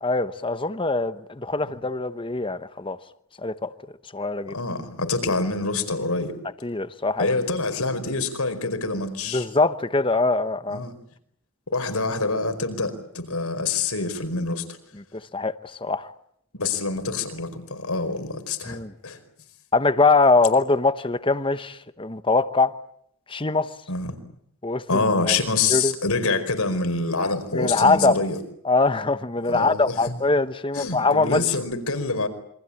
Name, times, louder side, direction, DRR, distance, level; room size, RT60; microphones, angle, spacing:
voice 1, 0.0-3.0 3.4-3.7 4.1-4.6 6.6-7.3 9.3-10.8 14.9-16.1 18.7-18.9 19.7-22.7 23.3-23.7 24.6-25.4 25.7-25.9 27.2-28.2 28.6-31.4, left 3 dB, 25° left, 1.1 m, -23 dB
voice 2, 4.5-6.3 7.2-9.5 10.7-10.9 11.7-14.6 16.5-19.2 23.9-24.2 24.9-28.4 29.5-30.2 30.7-32.3, left 3 dB, 85° left, 4.8 m, -26 dB
28.0 x 24.5 x 8.6 m
head